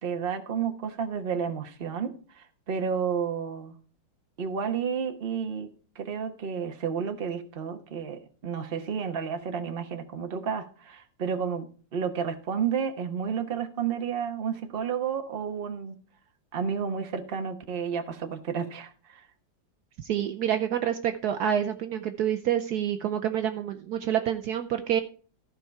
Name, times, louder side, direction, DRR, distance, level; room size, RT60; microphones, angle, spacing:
voice 1, 0.0-3.7 4.4-5.7 5.9-16.0 16.5-19.2, right 7 dB, 35° right, 7 dB, 1.1 m, -31 dB
voice 2, 20.0-25.0, right 10 dB, 70° right, 7 dB, 1.1 m, -27 dB
14.0 x 5.6 x 4.6 m, 0.41 s
omnidirectional pair, 1.9 m